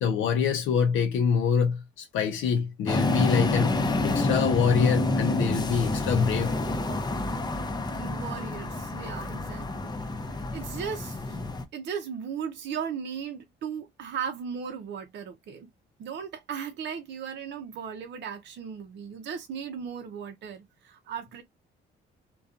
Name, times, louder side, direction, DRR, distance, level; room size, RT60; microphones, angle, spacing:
voice 1, 0.0-6.5, left 7 dB, 80° left, 0.5 m, -25 dB
sound 1, 2.9-11.7, left 2 dB, 20° left, 0.6 m, -28 dB
voice 2, 8.0-11.4 11.7-15.7 16.0-21.4, right 7 dB, 65° right, 0.6 m, -37 dB
2.6 x 2.2 x 2.4 m
cardioid pair, 90°, 20 cm